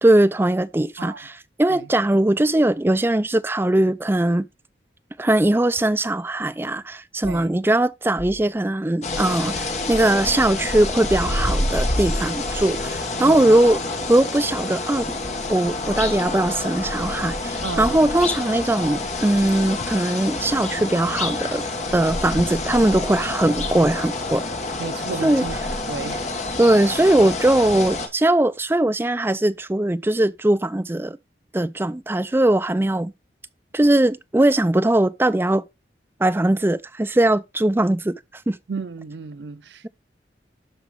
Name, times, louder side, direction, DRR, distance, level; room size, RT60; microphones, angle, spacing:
voice 1, 0.0-1.3 1.6-4.5 5.2-13.8 14.1-15.1 15.5-21.7 21.9-24.5 25.2-25.4 26.6-31.2 31.5-33.1 33.7-35.6 36.2-38.2 38.5-38.6, right 1 dB, 15° right, 0.4 m, -20 dB
voice 2, 1.0-1.3 1.7-1.9 7.2-7.5 13.2-13.5 17.6-18.1 24.8-25.6 25.9-26.3 38.7-39.9, right 4 dB, 75° right, 0.5 m, -33 dB
sound 1, 7.2-7.5 8.2-8.4 9.1-9.4 11.0-11.3 12.9-13.5, left 2 dB, 80° left, 0.8 m, -40 dB
sound 2, 9.0-28.1, left 2 dB, 40° left, 1.3 m, -27 dB
12.0 x 4.1 x 3.5 m
head